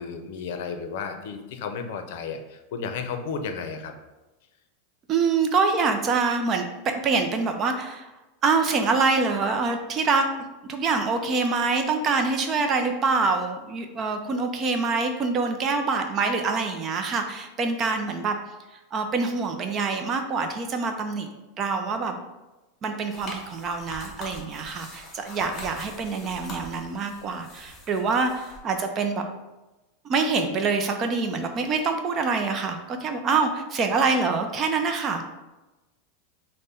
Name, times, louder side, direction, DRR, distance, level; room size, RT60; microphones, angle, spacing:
voice 1, 0.0-3.9, left 5 dB, 65° left, 7 dB, 0.6 m, -33 dB
voice 2, 5.1-8.1 8.4-18.4 18.9-21.3 21.6-22.2 22.8-29.2 30.0-35.2, right 4 dB, 30° right, 5 dB, 0.4 m, -25 dB
sound 1, 23.1-28.6, left 1 dB, 20° left, 1.3 m, -43 dB
5.1 x 2.1 x 4.2 m, 1.1 s
supercardioid pair, 140°, 0 cm